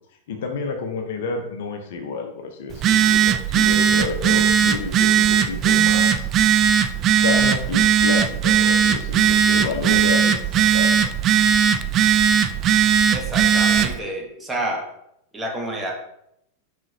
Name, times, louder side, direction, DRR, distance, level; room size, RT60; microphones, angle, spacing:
voice 1, 0.3-6.3 7.2-11.0, left 4 dB, 55° left, 4 dB, 0.9 m, -30 dB
Telephone, 2.7-14.0, right 8 dB, 30° right, 0.4 m, -18 dB
voice 2, 13.1-14.9 15.3-15.9, right 1 dB, 10° right, -1 dB, 1.5 m, -29 dB
6.0 x 5.2 x 3.0 m, 0.77 s
figure-of-eight pair, 90°, 0 cm